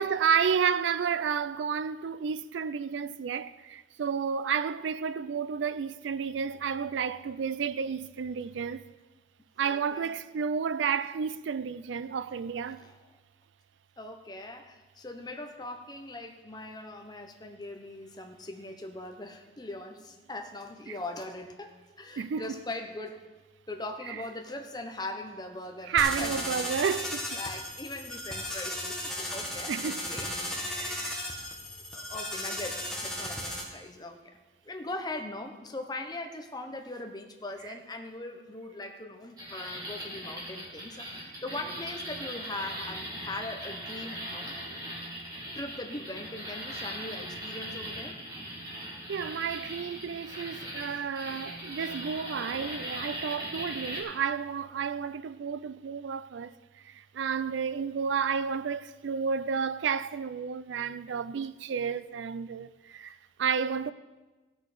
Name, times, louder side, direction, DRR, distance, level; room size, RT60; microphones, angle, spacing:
voice 1, 0.0-8.9 9.6-12.8 20.9-21.0 22.2-22.6 24.1-24.2 25.9-27.4 29.7-30.1 30.7-31.2 49.1-56.5 56.8-63.9, right 6 dB, 80° right, 0.4 m, -31 dB
voice 2, 9.6-10.1 12.8-13.0 14.0-23.2 23.7-26.4 27.3-31.4 31.9-34.2 34.6-44.5 45.5-48.2, left 2 dB, 20° left, 0.9 m, -40 dB
sound 1, 26.0-33.6, left 1 dB, 5° left, 1.6 m, -35 dB
sound 2, 39.4-54.0, equal, 20° right, 2.5 m, -40 dB
16.0 x 6.3 x 5.0 m
head